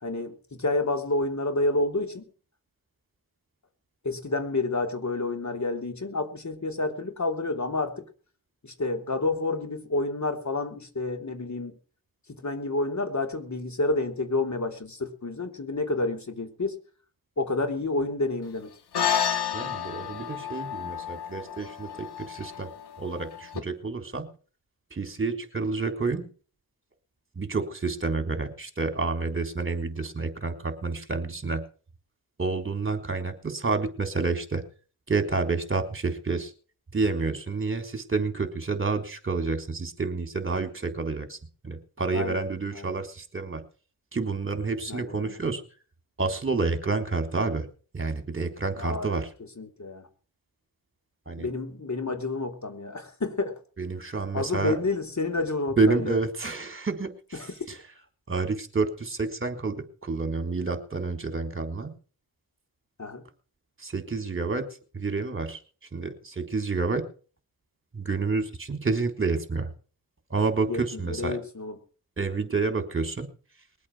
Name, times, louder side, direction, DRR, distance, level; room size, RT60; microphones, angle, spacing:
voice 1, 0.0-2.2 4.0-8.1 8.6-11.8 12.3-16.7 17.4-18.7 42.1-42.4 42.7-42.9 44.9-45.4 48.8-49.2 49.6-50.0 51.4-53.6 54.3-56.2 57.4-57.5 63.0-63.2 70.7-71.8, left 2 dB, 45° left, 6 dB, 3.3 m, -29 dB
sound 1, 18.9-23.6, left 8 dB, 70° left, 2.5 m, -31 dB
voice 2, 19.5-22.7 23.0-24.3 24.9-26.3 27.4-31.6 32.4-34.6 35.1-36.5 36.9-41.4 41.6-43.6 44.1-45.6 46.2-47.7 47.9-49.3 51.3-51.5 53.8-54.8 55.8-57.8 58.3-61.9 63.8-64.7 64.9-65.6 65.9-67.0 67.9-69.7 70.3-71.4 72.2-73.3, right 3 dB, 30° right, 6 dB, 3.7 m, -29 dB
21.5 x 8.5 x 6.2 m, 0.40 s
cardioid pair, 70°, 41 cm